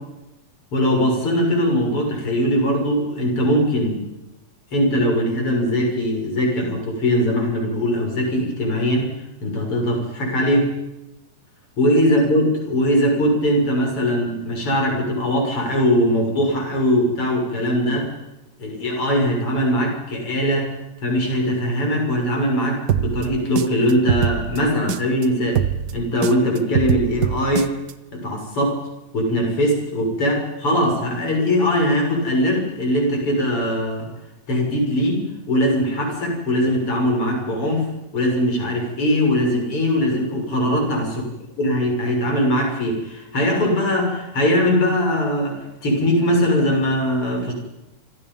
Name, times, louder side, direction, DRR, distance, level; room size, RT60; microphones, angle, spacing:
voice 1, 0.7-4.0 4.7-9.1 9.4-10.7 11.8-18.1 18.6-20.7 21.0-25.6 25.9-27.7 28.1-28.8 29.1-34.1 34.5-37.9 38.1-41.3 41.6-47.5, equal, 45° left, 1 dB, 7.3 m, -21 dB
sound 1, 22.9-25.2 25.5-27.9, right 9 dB, 80° right, 0.9 m, -23 dB
27.0 x 26.5 x 5.5 m, 0.96 s
omnidirectional pair, 3.4 m